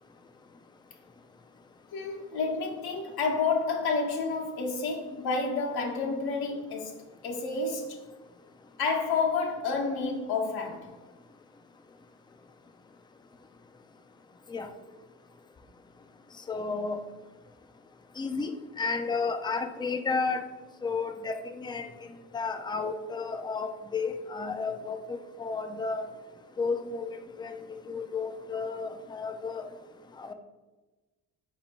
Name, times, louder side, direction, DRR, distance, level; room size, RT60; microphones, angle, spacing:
voice 1, 1.9-6.9 7.2-8.0 8.8-10.9, left 4 dB, 75° left, 0.9 m, -29 dB
voice 2, 16.5-17.0 18.2-18.5 18.8-20.4 20.8-21.9 22.3-26.1 26.6-29.6 30.2-30.3, left 4 dB, 15° left, 0.3 m, -32 dB
4.2 x 2.8 x 4.3 m
supercardioid pair, 75°, 38 cm